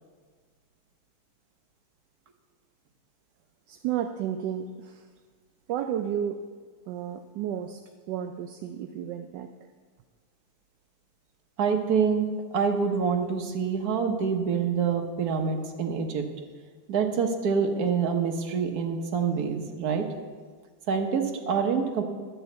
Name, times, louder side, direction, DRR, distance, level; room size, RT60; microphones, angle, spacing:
voice 1, 3.7-5.1 5.7-6.4 6.9-7.8 8.1-9.5, right 9 dB, 75° right, 6 dB, 1.1 m, -32 dB
voice 2, 11.6-12.3 12.5-16.3 16.9-20.0 20.9-22.0, right 6 dB, 55° right, 4 dB, 1.4 m, -26 dB
11.5 x 6.3 x 8.0 m, 1.6 s
omnidirectional pair, 2.2 m